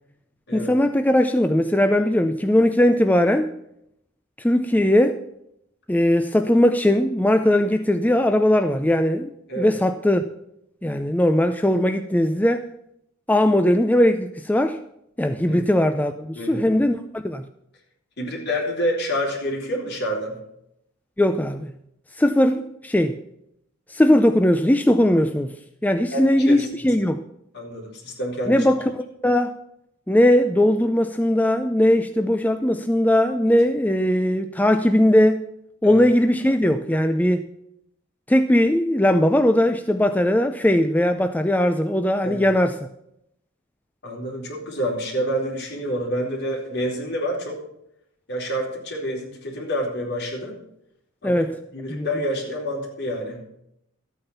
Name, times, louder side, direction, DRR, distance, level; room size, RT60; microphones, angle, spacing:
voice 1, 0.5-3.5 4.4-5.2 5.9-10.2 10.8-12.6 13.3-14.8 15.2-17.4 21.2-21.7 22.2-23.2 23.9-25.5 25.8-27.2 28.5-29.6 30.1-35.5 35.8-37.4 38.3-42.7 51.2-51.5 51.9-52.1, left 1 dB, 10° left, 0.5 m, -19 dB
voice 2, 16.3-16.7 18.2-20.4 26.1-26.7 27.5-28.7 35.8-36.0 42.2-42.4 44.0-47.6 48.3-50.6 51.2-51.4 51.7-53.4, equal, 55° left, 4.3 m, -28 dB
13.0 x 8.9 x 5.7 m
head